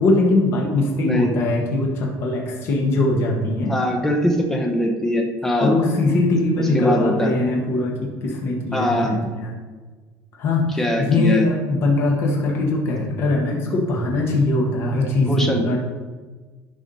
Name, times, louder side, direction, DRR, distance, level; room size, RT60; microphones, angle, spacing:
voice 1, 0.0-3.7 5.6-9.5 10.4-15.8, left 2 dB, 40° left, -1 dB, 1.5 m, -21 dB
voice 2, 3.7-5.7 6.6-7.3 8.7-9.3 10.8-11.5 15.2-15.8, left 1 dB, 5° left, 2 dB, 0.9 m, -21 dB
11.5 x 4.8 x 4.2 m, 1.4 s
cardioid pair, 175°, 6 cm